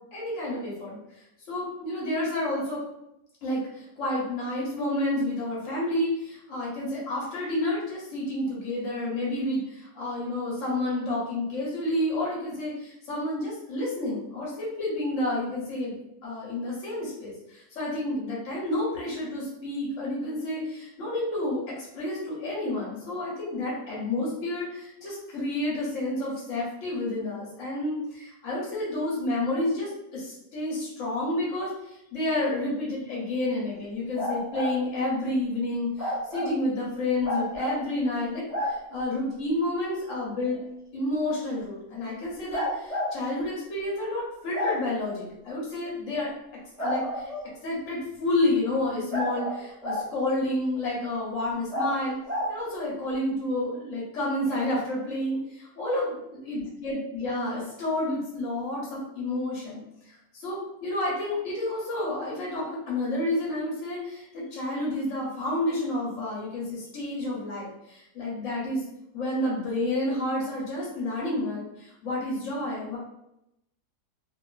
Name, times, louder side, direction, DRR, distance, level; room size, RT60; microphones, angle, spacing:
voice 1, 0.1-1.0 1.5-2.8 3.4-16.0 16.2-40.6 40.9-46.3 46.8-47.3 47.6-52.2 52.5-59.8 60.1-68.9 69.1-73.0, left 1 dB, 60° left, -5 dB, 1.1 m, -30 dB
sound 1, 34.1-34.7 36.0-36.5 37.2-37.8 38.5-38.7 40.5-40.6 42.5-43.1 44.5-44.7 46.8-47.5 49.1-50.0 51.7-51.9 52.3-52.5, left 1 dB, 25° left, 0.3 m, -29 dB
2.4 x 2.4 x 2.3 m, 0.83 s
omnidirectional pair, 1.6 m